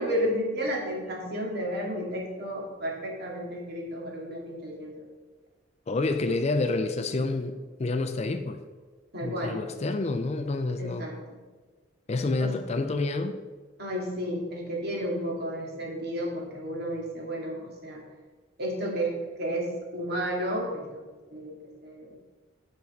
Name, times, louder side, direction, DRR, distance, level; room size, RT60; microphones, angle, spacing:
voice 1, 0.0-4.9 9.1-9.6 10.8-11.2 12.4-12.6 13.8-18.0 18.6-21.0 21.3-21.5 21.8-22.1, equal, 50° right, -2 dB, 2.0 m, -32 dB
voice 2, 5.9-8.6 9.2-11.1 12.1-13.4, left 3 dB, 35° left, 8 dB, 0.4 m, -28 dB
5.8 x 5.2 x 6.4 m, 1.3 s
head